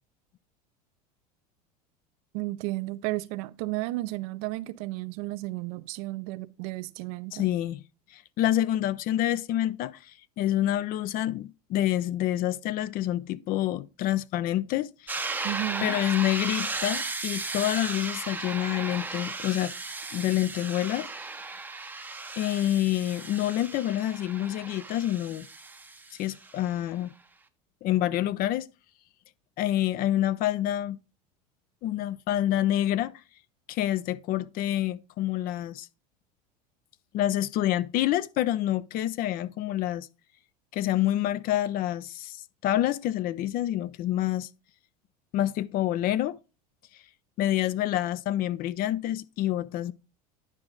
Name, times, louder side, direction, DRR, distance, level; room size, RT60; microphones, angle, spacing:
voice 1, 2.3-7.5 15.4-16.0, right 19 dB, 65° right, 0.5 m, -33 dB
voice 2, 7.3-7.8 8.1-10.1 10.4-15.3 15.8-19.7 20.1-21.1 22.4-25.5 26.2-27.1 27.8-28.7 29.6-31.0 31.8-33.1 33.7-35.9 37.1-40.1 40.7-42.4 42.6-44.5 45.3-46.4 47.4-49.9, left 13 dB, 45° left, 0.5 m, -27 dB
sound 1, 15.1-26.7, right 3 dB, 10° right, 0.6 m, -36 dB
9.9 x 4.8 x 3.8 m
hypercardioid pair, 100°, 20 cm